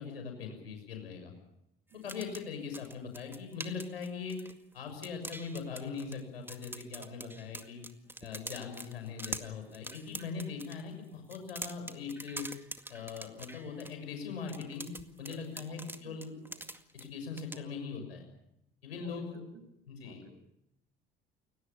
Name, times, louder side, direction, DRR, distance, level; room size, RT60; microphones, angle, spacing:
voice 1, 0.0-1.3 2.0-4.4 4.7-7.8 8.2-12.5 12.9-16.3 16.9-18.2 18.8-19.4 19.9-20.2, left 5 dB, 85° left, 5 dB, 6.6 m, -41 dB
sound 1, 1.9-4.7 5.0-6.2 6.5-10.8 11.2-13.9 14.5-17.1 17.4-17.6, right 1 dB, 5° right, 2.1 m, -44 dB
voice 2, 7.0-7.3 15.2-15.8 16.0-16.6 17.4-17.6 18.9-19.6 20.0-20.3, right 5 dB, 60° right, 7 dB, 7.0 m, -55 dB
29.5 x 18.0 x 7.0 m, 0.82 s
hypercardioid pair, 55°, 29 cm